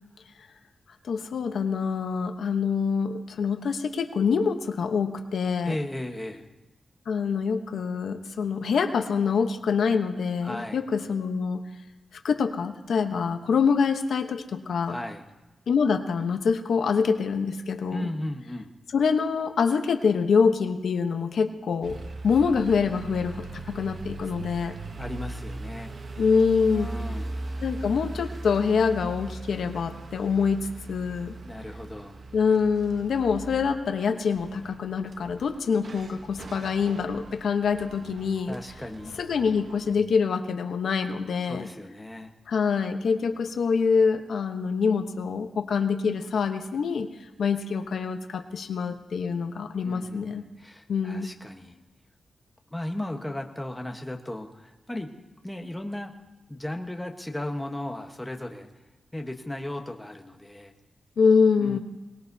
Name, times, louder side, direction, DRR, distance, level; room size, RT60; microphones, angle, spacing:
voice 1, 1.1-5.8 7.1-11.6 12.2-15.0 15.7-18.1 18.9-22.0 22.2-24.8 26.2-26.9 27.6-31.3 32.3-38.6 39.2-41.7 42.5-47.1 47.4-50.4 50.9-51.3 61.2-61.8, left 5 dB, 85° left, 7 dB, 0.9 m, -25 dB
voice 2, 5.6-6.5 10.4-10.8 14.9-15.3 17.9-18.7 24.2-24.5 25.0-25.9 26.7-27.4 31.4-32.2 38.5-39.2 41.5-42.3 49.8-51.8 52.7-55.1 55.4-56.1 56.5-58.7 59.1-60.7 61.6-61.8, left 1 dB, 10° left, 3 dB, 1.1 m, -36 dB
sound 1, 21.8-40.0, right 2 dB, 50° right, 1.0 m, -40 dB
22.5 x 19.5 x 2.7 m, 1.1 s
wide cardioid pair, 135°, 0 cm